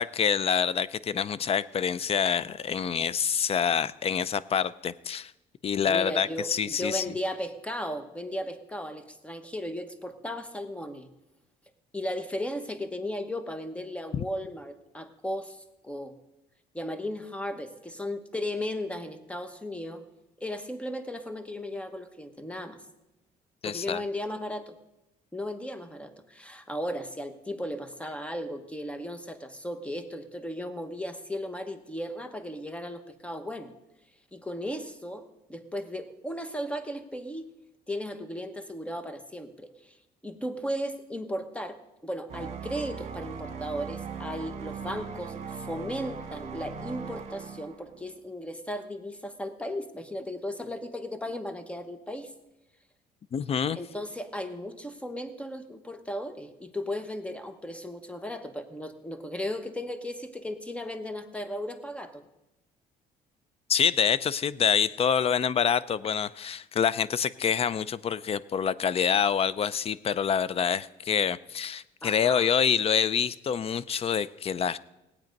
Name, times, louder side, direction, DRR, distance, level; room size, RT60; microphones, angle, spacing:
voice 1, 0.0-5.3 5.6-7.0 14.1-14.2 23.6-24.0 53.3-53.8 63.7-74.8, left 7 dB, 35° left, 19 dB, 0.5 m, -26 dB
voice 2, 5.9-11.1 11.9-16.2 16.7-20.0 20.4-22.8 23.6-24.8 25.3-33.7 34.3-37.5 37.9-40.0 40.2-52.3 53.7-62.2 72.0-72.5, equal, 5° left, 10 dB, 1.1 m, -36 dB
sound 1, 42.3-48.1, right 5 dB, 40° right, 1.9 m, -39 dB
18.0 x 8.7 x 5.3 m, 0.97 s
cardioid pair, 110°, 17 cm